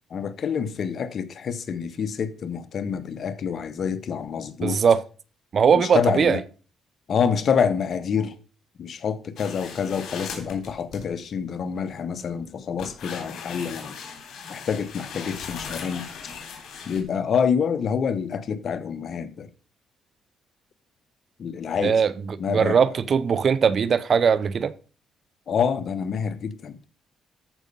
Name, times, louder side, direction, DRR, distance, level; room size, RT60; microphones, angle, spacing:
voice 1, 0.1-4.8 5.7-6.4 7.1-8.3 8.8-14.0 14.5-16.1 16.9-19.5 21.4-22.0 22.4-22.8 25.5-26.8, left 7 dB, 55° left, 1.1 m, -27 dB
voice 2, 4.6-5.0 5.5-6.4 21.8-22.1 22.5-24.7, right 6 dB, 50° right, 0.7 m, -20 dB
sound 1, 9.4-11.1 11.7-12.2 12.8-17.0, left 6 dB, 70° left, 3.6 m, -38 dB
13.5 x 5.3 x 5.4 m
cardioid pair, 90°, 0 cm